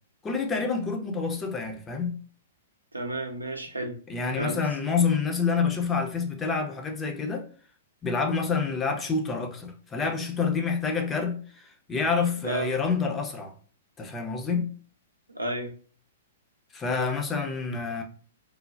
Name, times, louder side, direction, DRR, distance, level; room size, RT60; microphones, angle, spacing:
voice 1, 0.2-2.2 4.1-7.5 8.0-13.5 14.0-14.7 16.7-18.0, left 5 dB, 20° left, 0.5 m, -28 dB
voice 2, 2.9-4.0 4.4-4.6 12.4-12.7 15.3-15.7, right 1 dB, 90° right, 0.5 m, -32 dB
3.2 x 2.0 x 2.5 m
figure-of-eight pair, 110°, 0 cm